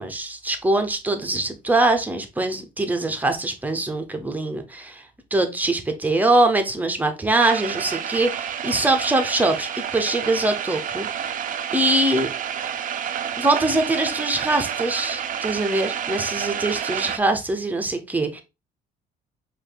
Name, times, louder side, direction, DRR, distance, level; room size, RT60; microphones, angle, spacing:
voice 1, 0.0-5.0 5.3-11.1 11.7-12.3 13.4-18.4, right 2 dB, 10° right, 6 dB, 0.9 m, -23 dB
sound 1, 7.4-17.2, right 8 dB, 50° right, 0.7 m, -29 dB
5.0 x 2.7 x 3.9 m, 0.26 s
cardioid pair, 110°, 17 cm